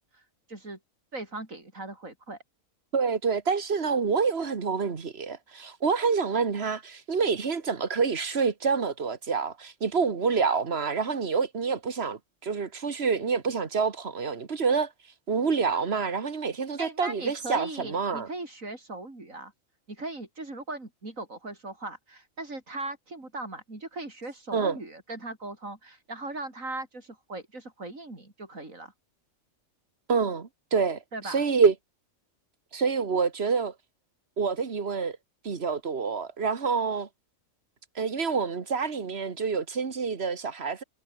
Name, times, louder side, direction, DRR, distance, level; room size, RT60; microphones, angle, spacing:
voice 1, 0.5-0.8 1.1-2.4 16.8-19.5 19.9-28.9 31.1-31.4, right 2 dB, 85° right, 5.6 m, -39 dB
voice 2, 2.9-14.9 15.3-18.3 24.5-24.8 30.1-31.7 32.7-33.7 34.4-35.2 35.4-37.1 38.0-40.8, right 5 dB, 50° right, 1.9 m, -27 dB
omnidirectional pair, 1.4 m